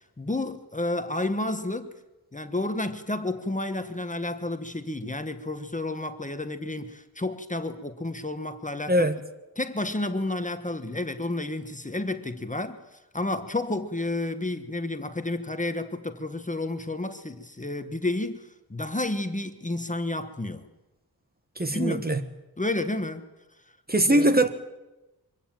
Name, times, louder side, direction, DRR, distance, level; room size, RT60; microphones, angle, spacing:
voice 1, 0.0-1.9 2.3-9.1 9.6-12.8 13.1-20.7 21.7-22.1 22.6-23.2 24.1-24.3, left 2 dB, 20° left, 1.4 m, -31 dB
voice 2, 8.9-9.2 21.6-22.2 23.9-24.5, right 1 dB, 25° right, 1.4 m, -21 dB
24.0 x 16.5 x 9.1 m
wide cardioid pair, 115°, 39 cm